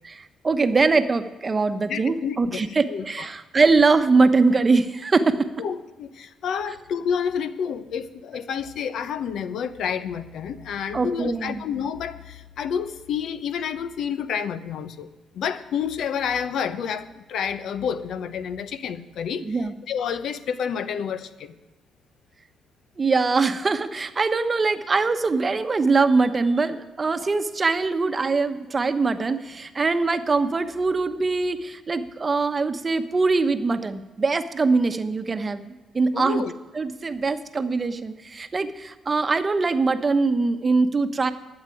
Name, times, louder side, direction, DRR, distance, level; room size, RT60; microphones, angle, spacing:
voice 1, 0.1-5.5 10.9-11.6 19.4-19.7 23.0-36.4 36.7-41.3, right 4 dB, 30° right, 9 dB, 0.9 m, -22 dB
voice 2, 1.9-3.3 5.6-15.1 15.3-19.4 19.9-21.6 36.1-36.5, left 7 dB, 70° left, 12 dB, 0.8 m, -29 dB
11.5 x 8.1 x 9.9 m, 1.2 s
cardioid pair, 90°, 0 cm